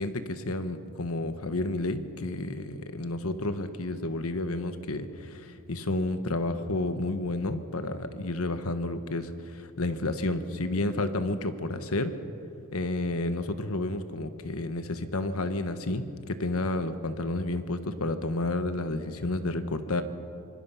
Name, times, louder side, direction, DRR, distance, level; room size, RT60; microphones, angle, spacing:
voice 1, 0.0-12.1 12.7-20.0, left 2 dB, 70° left, 10 dB, 1.2 m, -31 dB
25.5 x 20.5 x 5.7 m, 2.7 s
head